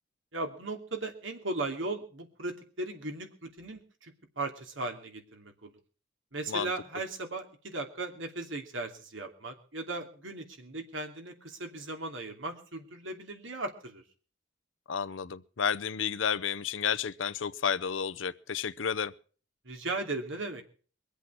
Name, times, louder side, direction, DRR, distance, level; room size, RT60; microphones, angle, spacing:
voice 1, 0.3-5.7 6.3-14.0 19.6-20.6, right 2 dB, 90° right, 2.8 m, -37 dB
voice 2, 14.9-19.1, left 7 dB, 85° left, 0.7 m, -31 dB
22.5 x 8.2 x 6.2 m
head